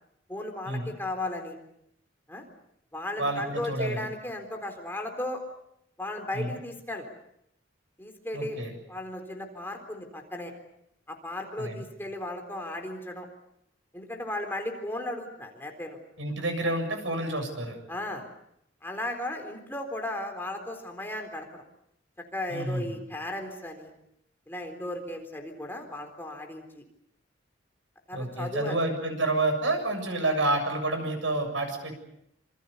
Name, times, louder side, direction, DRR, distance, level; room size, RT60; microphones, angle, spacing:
voice 1, 0.3-1.6 2.3-2.5 2.9-5.4 6.0-7.1 8.0-8.6 8.9-10.5 11.1-13.3 13.9-16.0 17.9-18.3 18.8-21.6 22.3-23.9 24.5-26.8 28.1-28.8, left 1 dB, 10° left, 3 dB, 4.0 m, -35 dB
voice 2, 3.2-4.1 6.3-6.5 8.3-8.7 11.6-11.8 16.2-17.8 22.5-22.8 28.1-31.9, right 2 dB, 85° right, 6 dB, 7.4 m, -29 dB
27.0 x 26.0 x 6.9 m, 0.77 s
head